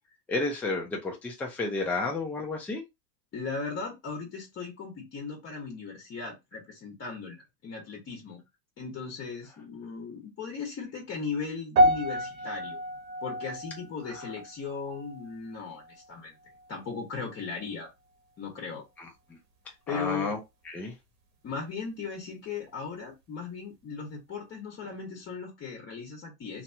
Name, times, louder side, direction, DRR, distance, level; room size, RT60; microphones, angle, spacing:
voice 1, 0.3-2.8 19.3-19.4 19.9-20.4 20.7-20.9, left 3 dB, 5° left, 0.4 m, -31 dB
voice 2, 3.3-8.4 8.8-12.8 13.2-16.4 16.7-17.9 18.4-18.8 19.9-20.3 21.4-26.6, left 5 dB, 25° left, 1.1 m, -37 dB
sound 1, 11.8-16.1 16.4-16.8 17.4-17.5, equal, 80° right, 1.1 m, -29 dB
2.8 x 2.3 x 2.7 m
hypercardioid pair, 110°, 50 cm